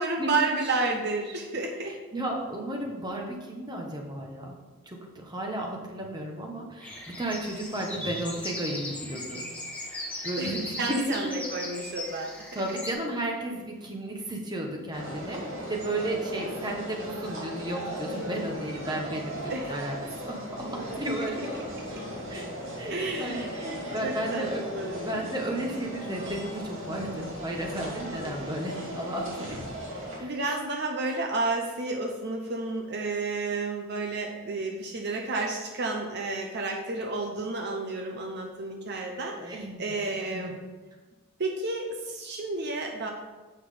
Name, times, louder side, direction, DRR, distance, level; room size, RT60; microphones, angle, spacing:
voice 1, 0.0-2.0 10.4-12.8 19.5-19.7 21.2-21.3 21.7-22.0 22.9-23.5 23.8-25.0 28.2-28.6 30.0-40.6 41.4-43.1, right 3 dB, 55° right, 3 dB, 0.8 m, -31 dB
voice 2, 1.9-4.6 4.9-9.5 10.2-11.5 12.5-21.5 22.3-22.5 22.8-24.7 25.0-29.6 30.2-30.3 39.4-39.8 40.3-40.5, right 1 dB, 20° right, 0 dB, 1.2 m, -33 dB
sound 1, 6.8-12.9, left 1 dB, 5° left, 1.3 m, -38 dB
sound 2, 14.9-30.2, equal, 75° right, 2.6 m, -37 dB
7.7 x 6.0 x 5.0 m, 1.3 s
head